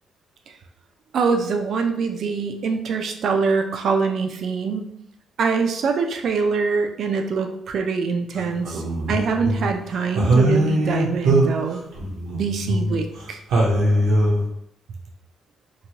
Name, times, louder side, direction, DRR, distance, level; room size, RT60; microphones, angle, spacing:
voice 1, 1.1-4.9 5.4-8.8 9.1-11.8 12.3-13.4, right 5 dB, 65° right, 4 dB, 0.4 m, -24 dB
sound 1, 8.3-9.8 10.1-13.3 13.5-14.5, right 1 dB, 85° right, 0.8 m, -21 dB
3.0 x 2.2 x 2.8 m, 0.72 s
cardioid pair, 90°, 0 cm